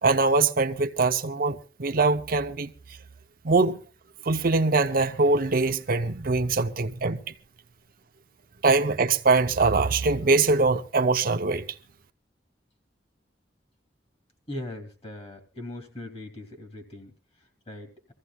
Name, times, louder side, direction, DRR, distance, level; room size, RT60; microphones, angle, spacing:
voice 1, 0.0-2.7 3.4-3.8 4.2-7.2 8.6-11.6, right 3 dB, 55° right, 0.8 m, -23 dB
voice 2, 14.5-18.1, left 1 dB, 35° left, 2.7 m, -40 dB
25.0 x 15.0 x 2.4 m
head